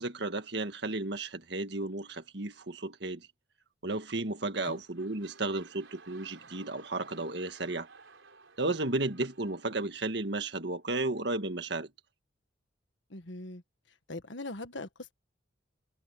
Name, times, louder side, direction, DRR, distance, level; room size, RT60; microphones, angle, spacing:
voice 1, 0.0-3.3 3.8-7.9 8.6-11.9, right 2 dB, 60° right, 1.8 m, -33 dB
sound 1, 4.2-4.4 4.7-10.5 11.2-11.3, right 5 dB, 80° right, 4.2 m, -56 dB
voice 2, 13.1-13.6 14.1-15.1, left 2 dB, 70° left, 1.6 m, -41 dB
head